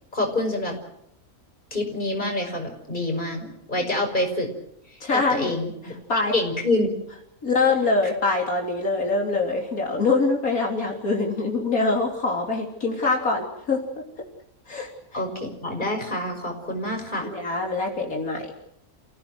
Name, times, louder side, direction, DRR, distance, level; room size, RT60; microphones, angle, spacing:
voice 1, 0.1-0.7 1.7-4.5 5.1-5.9 6.3-6.9 15.1-17.3, left 1 dB, 30° left, 3 dB, 5.9 m, -27 dB
voice 2, 5.0-5.5 6.1-6.3 7.4-13.8 14.7-15.2 17.2-18.5, left 3 dB, 75° left, 0 dB, 3.7 m, -24 dB
29.5 x 17.5 x 7.9 m, 0.77 s
omnidirectional pair, 1.5 m